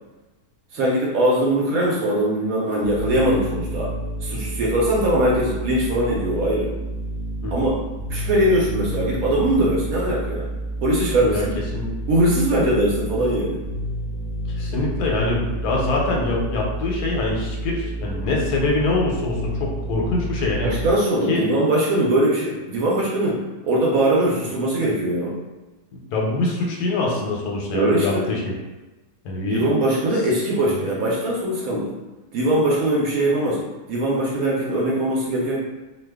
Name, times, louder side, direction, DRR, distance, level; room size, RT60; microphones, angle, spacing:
voice 1, 0.7-3.9 4.2-6.7 7.5-7.8 8.1-10.5 10.8-11.5 12.1-13.6 20.6-25.4 27.7-28.4 29.5-31.9 32.3-35.6, right 1 dB, 70° right, -4 dB, 1.0 m, -21 dB
sound 1, 2.8-20.9, right 1 dB, 30° left, 0.4 m, -30 dB
voice 2, 14.5-20.7 21.3-21.4 25.9-28.5 29.2-29.6, left 2 dB, 90° left, -1 dB, 1.2 m, -24 dB
2.7 x 2.2 x 3.4 m, 1.1 s
omnidirectional pair, 1.6 m